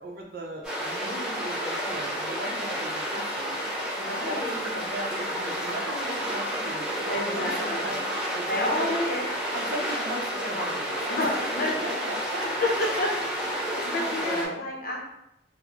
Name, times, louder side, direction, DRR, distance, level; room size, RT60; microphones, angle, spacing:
voice 1, 0.0-3.6 4.2-8.0 8.3-8.9 9.5-11.3 11.6-13.3 13.7-14.6, right 1 dB, 55° right, 0 dB, 0.6 m, -37 dB
sound 1, 0.6-14.4, equal, ahead, 1.2 m, -31 dB
voice 2, 4.0-4.5 7.1-7.9 8.5-9.3 11.1-12.0 12.4-12.6 13.0-13.1 13.8-15.0, left 1 dB, 50° left, -1 dB, 0.7 m, -30 dB
4.0 x 2.0 x 2.9 m, 0.85 s
head